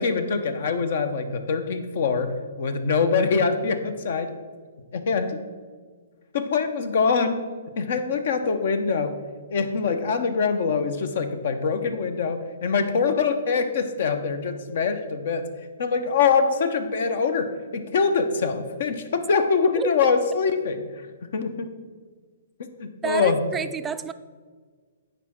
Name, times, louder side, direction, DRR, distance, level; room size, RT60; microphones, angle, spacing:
voice 1, 0.0-2.3 2.6-4.3 4.9-5.4 6.3-7.4 7.8-9.2 9.5-15.5 15.8-20.8 21.2-21.7 22.8-23.4, left 5 dB, 60° left, 9 dB, 0.9 m, -24 dB
voice 2, 23.0-24.1, right 6 dB, 15° right, 11 dB, 0.4 m, -29 dB
9.0 x 4.9 x 6.0 m, 1.5 s
hypercardioid pair, 140°, 0 cm